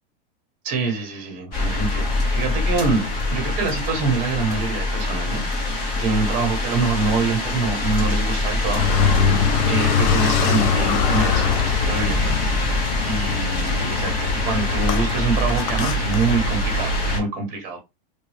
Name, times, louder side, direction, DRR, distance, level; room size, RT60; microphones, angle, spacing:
voice 1, 0.6-3.0 3.3-5.7 6.0-9.3 9.6-12.7 13.0-17.8, right 4 dB, 25° right, 1.3 m, -25 dB
sound 1, 1.5-17.2, left 1 dB, 30° left, 1.4 m, -24 dB
Car, 8.6-16.8, left 7 dB, 50° left, 0.5 m, -23 dB
3.1 x 2.6 x 3.2 m
supercardioid pair, 170°, 30 cm